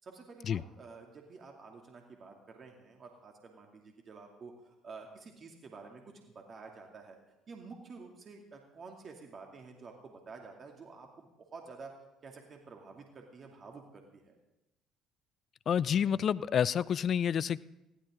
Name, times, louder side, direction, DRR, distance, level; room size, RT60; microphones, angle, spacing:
voice 1, 0.0-7.2 7.5-11.9 12.2-14.3, right 4 dB, 45° right, 2 dB, 2.6 m, -50 dB
voice 2, 15.7-17.6, left 8 dB, 50° left, 19 dB, 0.4 m, -28 dB
21.0 x 15.5 x 3.8 m, 0.91 s
hypercardioid pair, 55°, 0 cm